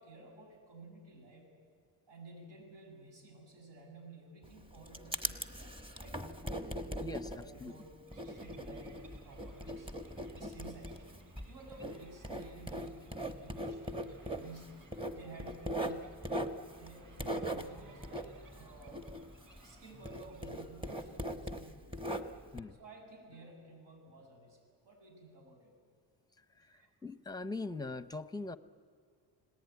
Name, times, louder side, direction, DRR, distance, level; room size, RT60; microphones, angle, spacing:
voice 1, 0.0-1.5 2.1-6.2 7.3-9.9 10.3-11.2 11.5-16.3 16.7-19.1 19.6-22.2 22.7-25.7 26.6-26.9, right 2 dB, 85° right, 2 dB, 7.5 m, -54 dB
Writing, 4.4-19.8 20.0-22.6, right 1 dB, 10° right, 1.2 m, -40 dB
sound 1, 6.4-24.4, right 1 dB, 35° right, 5.6 m, -63 dB
voice 2, 7.0-7.3 7.6-7.7 22.5-22.8 27.0-28.6, left 2 dB, 10° left, 12 dB, 0.6 m, -40 dB
sound 2, 8.1-21.3, right 3 dB, 50° right, 6.0 m, -63 dB
30.0 x 19.0 x 9.4 m, 2.1 s
cardioid pair, 145°, 42 cm